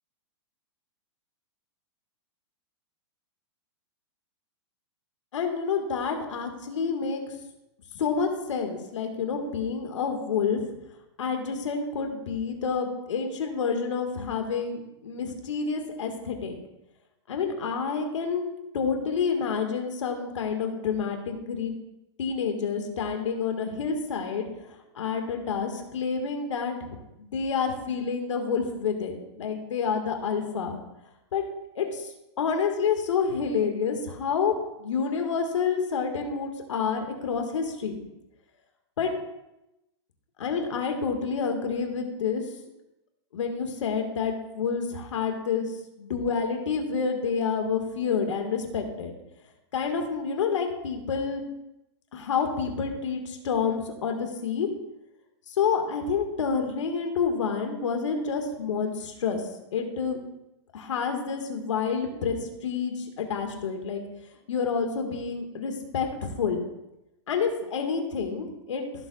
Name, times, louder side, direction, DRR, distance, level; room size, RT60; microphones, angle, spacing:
voice 1, 5.3-7.2 7.9-10.6 11.2-16.6 17.3-18.4 18.7-21.7 22.2-26.9 27.2-30.8 31.3-31.4 31.8-34.5 34.8-38.0 39.0-39.1 40.4-42.4 43.3-45.7 46.0-49.1 49.7-51.4 52.1-54.7 55.5-59.4 59.7-60.2 60.7-64.0 64.5-66.6 67.3-68.9, left 6 dB, 80° left, 4 dB, 1.9 m, -28 dB
16.0 x 7.4 x 2.4 m, 0.92 s
supercardioid pair, 175°, 15 cm